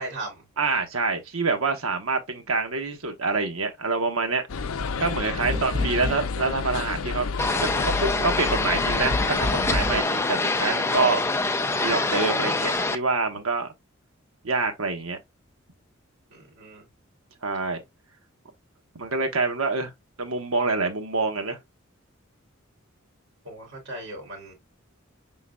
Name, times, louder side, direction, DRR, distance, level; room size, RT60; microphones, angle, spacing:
voice 1, 0.0-0.4 5.5-5.7 16.3-16.8 23.4-24.5, right 2 dB, 60° right, 2.9 m, -38 dB
voice 2, 0.6-4.4 5.0-7.3 7.6-11.2 11.8-13.7 14.4-15.2 17.4-17.8 18.9-19.9 20.2-21.6, right 3 dB, 90° right, 1.1 m, -26 dB
sound 1, 4.5-10.0, left 4 dB, 85° left, 0.5 m, -30 dB
sound 2, 5.5-6.5 9.1-10.0, left 1 dB, 20° right, 0.7 m, -29 dB
sound 3, 7.4-13.0, left 2 dB, 15° left, 0.3 m, -25 dB
5.3 x 3.8 x 2.2 m
head